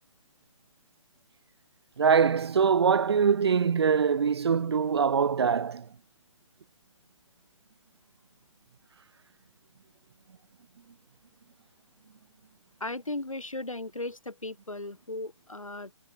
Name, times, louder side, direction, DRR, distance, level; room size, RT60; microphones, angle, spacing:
voice 1, 2.0-5.9, right 6 dB, 50° right, 0.5 m, -23 dB
voice 2, 12.8-16.0, left 2 dB, 75° left, 6.2 m, -36 dB
figure-of-eight pair, 135°, 17 cm